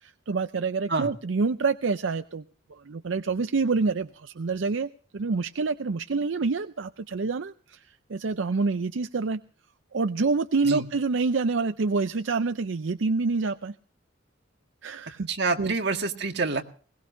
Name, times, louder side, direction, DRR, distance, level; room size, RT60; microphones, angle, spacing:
voice 1, 0.0-2.4 2.7-7.8 8.1-9.4 9.9-13.8 14.8-15.3 15.6-15.7, right 4 dB, 85° right, 10 dB, 0.6 m, -27 dB
voice 2, 15.3-16.6, right 3 dB, 65° right, 4 dB, 1.8 m, -27 dB
21.0 x 19.0 x 2.7 m, 0.43 s
head